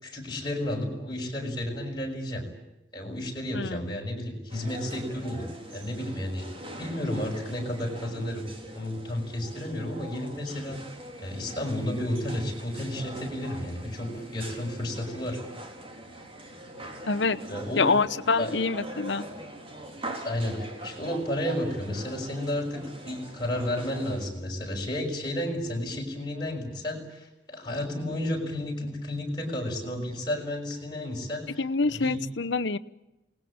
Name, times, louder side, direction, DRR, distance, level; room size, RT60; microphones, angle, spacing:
voice 1, 0.0-2.5 2.9-6.5 6.8-8.5 8.7-10.8 11.2-15.4 17.5-17.9 18.4-18.6 20.2-32.2, left 1 dB, 20° left, -2 dB, 6.2 m, -32 dB
voice 2, 3.5-4.0 17.1-17.4 17.8-19.3 31.6-32.8, left 4 dB, 65° left, 14 dB, 1.0 m, -26 dB
sound 1, 4.5-24.3, right 1 dB, 30° right, 3.8 m, -43 dB
28.0 x 19.5 x 8.9 m, 0.96 s
head